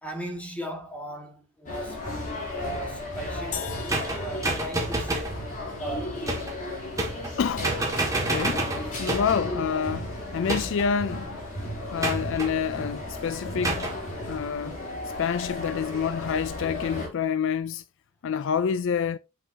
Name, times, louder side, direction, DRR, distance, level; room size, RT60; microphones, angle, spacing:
voice 1, 0.0-2.1 2.5-5.4 5.8-6.2, right 1 dB, 5° left, 1.8 m, -37 dB
sound 1, 1.7-17.1, left 1 dB, 35° left, 3.3 m, -34 dB
sound 2, 3.5-5.9, left 8 dB, 85° left, 1.2 m, -40 dB
sound 3, 3.9-5.4 6.3-6.6 7.0-7.4 7.6-9.4 10.5-11.0 12.0-12.5 13.6-14.0, right 2 dB, 15° right, 1.8 m, -29 dB
voice 2, 7.4-7.7 8.3-8.7 9.0-11.3 11.9-13.9 14.3-14.8 15.2-17.8 18.2-19.2, left 7 dB, 60° left, 0.3 m, -27 dB
7.7 x 6.0 x 2.8 m
head